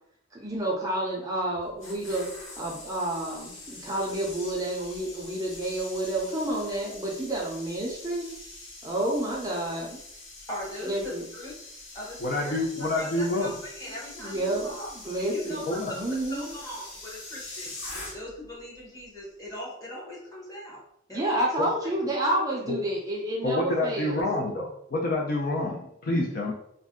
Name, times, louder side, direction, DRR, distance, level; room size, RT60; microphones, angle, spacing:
voice 1, 0.3-2.3 2.6-8.3 8.8-10.0 10.8-11.2 14.2-16.4 21.1-24.2, right 1 dB, 15° right, -4 dB, 0.5 m, -30 dB
sound 1, 1.5-18.5 18.8-19.0, left 2 dB, 90° left, 0.9 m, -44 dB
voice 2, 10.5-11.5 11.9-14.9 15.2-16.0 16.3-17.8 18.1-20.8 21.1-21.5, equal, 20° left, -5 dB, 1.0 m, -40 dB
voice 3, 12.2-13.5 15.7-15.9 22.7-22.8 23.4-26.5, left 2 dB, 45° left, -1 dB, 0.4 m, -27 dB
2.5 x 2.2 x 3.6 m, 0.74 s
head